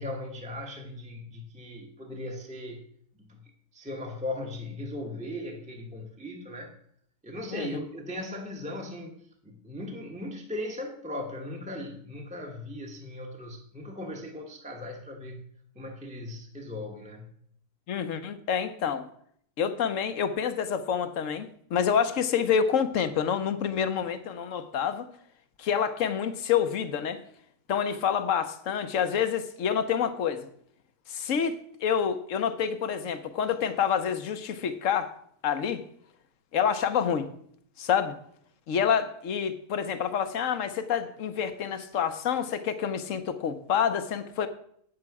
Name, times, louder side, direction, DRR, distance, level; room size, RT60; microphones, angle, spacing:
voice 1, 0.0-2.8 3.2-6.7 7.2-9.2 9.4-15.4 15.7-17.3, left 1 dB, 5° right, 1 dB, 0.9 m, -38 dB
voice 2, 17.9-19.1 19.6-25.1 25.6-27.2 27.7-30.5 31.1-35.1 35.4-35.8 36.5-37.3 37.8-38.1 38.7-44.5, left 7 dB, 60° left, 10 dB, 1.0 m, -28 dB
8.8 x 7.6 x 4.7 m, 0.65 s
omnidirectional pair, 1.7 m